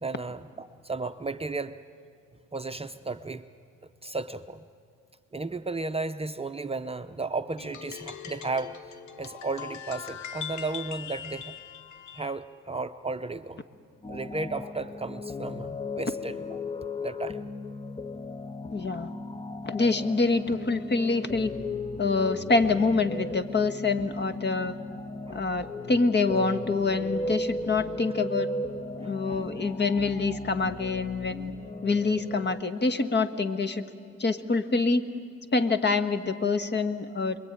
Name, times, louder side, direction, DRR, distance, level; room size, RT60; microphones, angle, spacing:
voice 1, 0.0-1.8 2.5-3.4 4.0-4.6 5.3-11.6 12.1-13.6 14.1-16.6 17.0-17.5 25.3-25.5 29.0-29.4, right 3 dB, 20° right, 8 dB, 0.7 m, -34 dB
sound 1, 7.6-12.3, left 8 dB, 70° left, 1.3 m, -41 dB
sound 2, 14.0-32.6, left 2 dB, 15° left, 0.7 m, -36 dB
voice 2, 18.7-19.1 19.7-21.5 22.0-24.7 25.3-28.5 29.0-31.5 31.8-33.8 34.2-35.0 35.5-37.4, left 3 dB, 35° left, 10 dB, 1.5 m, -26 dB
29.0 x 22.0 x 9.0 m, 2.3 s
cardioid pair, 90°, 30 cm